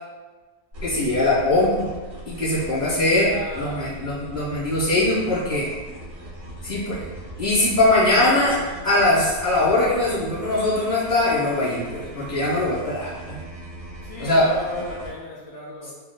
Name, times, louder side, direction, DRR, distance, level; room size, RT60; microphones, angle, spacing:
sound 1, 0.7-15.1, right 1 dB, 80° right, 2.2 m, -39 dB
voice 1, 0.8-1.9 2.2-3.3 3.6-5.7 6.6-7.0 7.4-8.6 8.8-13.4 14.2-14.5, left 2 dB, 15° right, -9 dB, 0.7 m, -21 dB
voice 2, 3.3-3.9 8.2-8.5 14.0-15.9, left 2 dB, 70° left, -5 dB, 0.9 m, -35 dB
4.5 x 2.2 x 2.3 m, 1.3 s
omnidirectional pair, 1.8 m